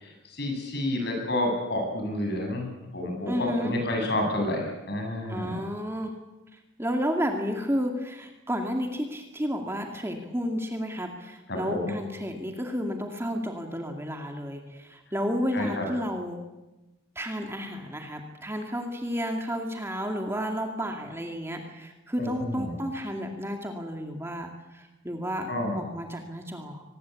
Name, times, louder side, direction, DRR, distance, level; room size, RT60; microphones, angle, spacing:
voice 1, 0.0-5.6 11.5-11.9 15.5-15.8 22.2-22.7 25.5-25.8, left 1 dB, 55° left, 2 dB, 7.8 m, -29 dB
voice 2, 3.3-3.7 5.3-6.1 6.8-16.4 17.2-26.8, equal, 15° right, 3 dB, 2.3 m, -32 dB
24.0 x 20.0 x 8.4 m, 1.0 s
head